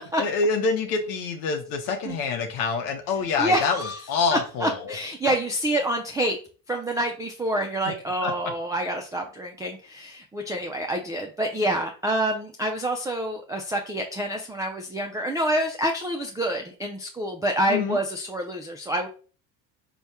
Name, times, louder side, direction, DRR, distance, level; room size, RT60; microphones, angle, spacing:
voice 1, 0.0-4.9 7.9-8.0 8.2-8.3 17.7-18.0, left 4 dB, 75° left, 4 dB, 0.8 m, -26 dB
voice 2, 3.4-4.0 4.3-6.4 6.7-19.1, right 1 dB, 10° right, 2 dB, 0.3 m, -27 dB
3.4 x 2.3 x 4.2 m, 0.39 s
hypercardioid pair, 80°, 47 cm